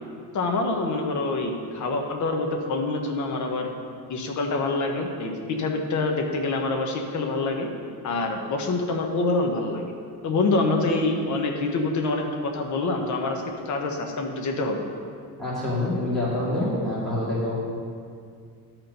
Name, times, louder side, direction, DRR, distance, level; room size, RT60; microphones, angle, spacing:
voice 1, 0.3-3.7 4.1-7.7 8.0-9.9 10.2-14.8, left 3 dB, 45° left, 3 dB, 1.0 m, -26 dB
voice 2, 15.4-17.6, left 1 dB, ahead, -11 dB, 2.1 m, -26 dB
11.5 x 4.5 x 5.2 m, 2.3 s
cardioid pair, 165°, 39 cm